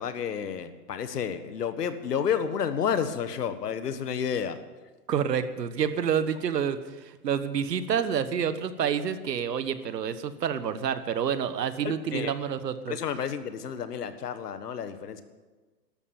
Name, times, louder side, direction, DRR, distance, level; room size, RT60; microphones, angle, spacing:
voice 1, 0.0-4.6 11.8-12.3 12.9-15.2, left 7 dB, 70° left, 11 dB, 1.5 m, -30 dB
voice 2, 5.1-13.0, right 8 dB, 75° right, 12 dB, 1.4 m, -28 dB
13.0 x 12.5 x 7.2 m, 1.3 s
hypercardioid pair, 175°, 50 cm